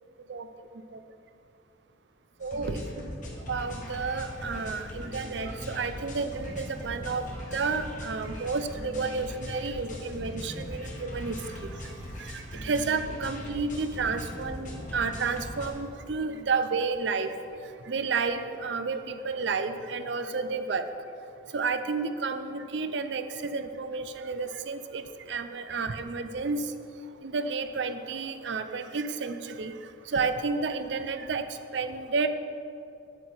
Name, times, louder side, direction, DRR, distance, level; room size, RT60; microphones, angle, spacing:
sound 1, 2.4-15.7, left 1 dB, 40° left, 1.5 m, -40 dB
voice 1, 2.4-2.8 3.5-11.7 12.2-17.3 17.9-20.9 21.5-25.0 25.3-26.7 27.2-29.7 30.1-31.5 31.7-32.3, right 4 dB, 65° right, 9 dB, 0.5 m, -31 dB
8.8 x 8.3 x 4.2 m, 2.6 s
head